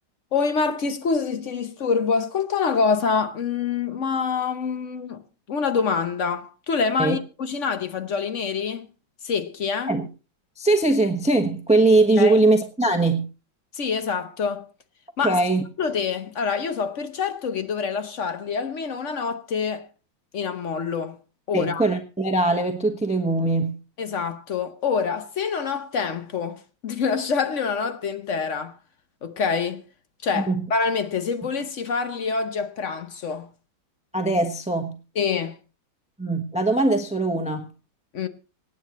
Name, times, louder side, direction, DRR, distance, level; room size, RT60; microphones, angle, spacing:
voice 1, 0.3-5.2 5.5-8.9 9.2-9.9 12.2-12.4 13.7-14.7 15.2-15.4 15.8-19.8 20.3-21.2 21.5-21.8 24.0-28.7 29.2-29.8 30.2-33.5 35.2-35.6 38.1-38.3, left 5 dB, 50° left, 0.9 m, -26 dB
voice 2, 10.6-13.3 15.2-15.6 21.5-23.8 30.3-30.6 34.1-35.0 36.2-37.7, right 2 dB, 5° right, 0.7 m, -21 dB
25.0 x 9.2 x 3.0 m
omnidirectional pair, 2.2 m